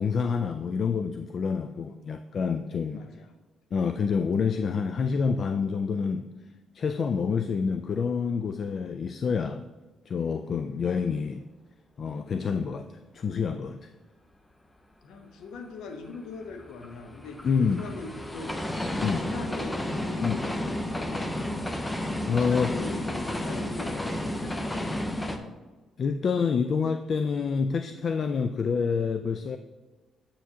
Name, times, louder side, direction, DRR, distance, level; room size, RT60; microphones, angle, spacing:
voice 1, 0.0-3.0 3.7-6.3 6.7-9.6 10.1-11.4 12.0-13.9 17.4-17.8 19.0-19.2 20.2-20.4 22.3-22.7 26.0-29.6, left 5 dB, 50° left, 8 dB, 0.3 m, -27 dB
voice 2, 2.8-3.3 12.5-12.7 15.0-18.6 18.9-21.2 22.1-25.4, left 3 dB, 85° left, 6 dB, 0.8 m, -42 dB
sound 1, 16.0-25.4, left 1 dB, 15° left, 0.6 m, -32 dB
7.9 x 6.2 x 2.8 m, 1.2 s
cardioid pair, 90°, 0 cm